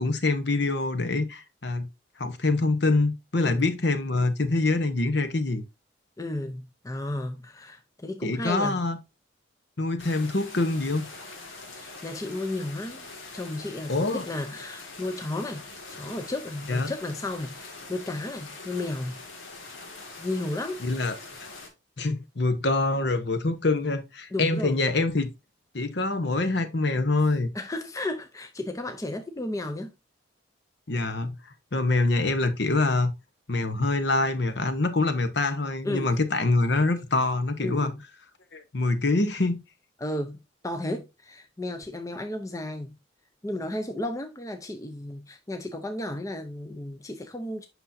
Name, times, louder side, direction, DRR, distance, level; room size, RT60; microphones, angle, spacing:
voice 1, 0.0-1.9 2.2-5.6 8.2-9.0 9.8-11.1 13.9-14.3 16.7-16.9 20.8-21.2 22.0-25.3 25.7-27.5 30.9-31.4 31.7-33.1 33.5-37.9 38.5-39.6, left 2 dB, 60° left, 0.9 m, -25 dB
voice 2, 6.2-8.8 11.8-13.1 13.3-15.6 15.9-19.2 20.2-20.8 24.3-24.8 27.5-29.9 35.8-36.1 37.6-38.0 40.0-42.9 43.4-47.7, left 1 dB, 15° left, 0.6 m, -33 dB
sound 1, 10.0-21.7, left 3 dB, 90° left, 2.1 m, -43 dB
8.1 x 5.7 x 2.7 m
head